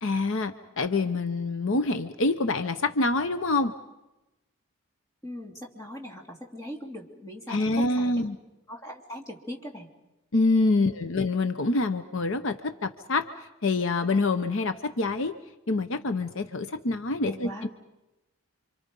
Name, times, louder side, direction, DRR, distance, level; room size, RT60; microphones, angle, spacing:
voice 1, 0.0-3.7 7.5-8.4 10.3-13.3 13.6-15.4 15.7-17.7, left 3 dB, 60° left, 9 dB, 0.8 m, -26 dB
voice 2, 5.2-8.3 8.7-9.9 10.8-11.1 17.2-17.7, equal, 15° left, 0 dB, 2.9 m, -40 dB
28.5 x 26.0 x 5.3 m, 1.0 s
head